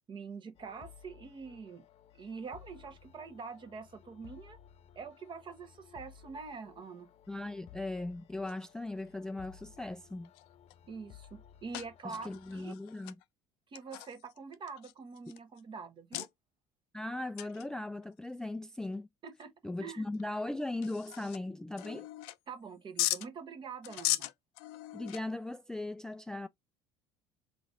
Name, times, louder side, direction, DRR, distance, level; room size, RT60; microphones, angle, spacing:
voice 1, 0.1-1.8 2.2-4.6 4.9-7.1 10.9-12.8 13.7-16.3 19.2-19.5 19.8-20.1 22.5-24.3, right 5 dB, 35° right, 1.1 m, -45 dB
sound 1, 0.6-12.7, left 9 dB, 45° left, 0.8 m, -57 dB
voice 2, 7.3-10.3 12.0-13.2 16.9-19.1 19.6-22.1 24.9-26.5, left 2 dB, 5° left, 0.3 m, -38 dB
sound 2, 8.5-8.9 9.8-9.9 10.2-10.7 11.2-11.3 11.7-13.2 13.7-15.6 16.1-16.3 17.4-17.7 18.0-18.1 18.8-18.9 19.4-19.5 20.1-20.2 20.6-21.4 21.8-22.6 23.0-23.3 23.8-25.5, left 16 dB, 65° left, 0.5 m, -38 dB
4.8 x 3.8 x 2.5 m
hypercardioid pair, 65°, 14 cm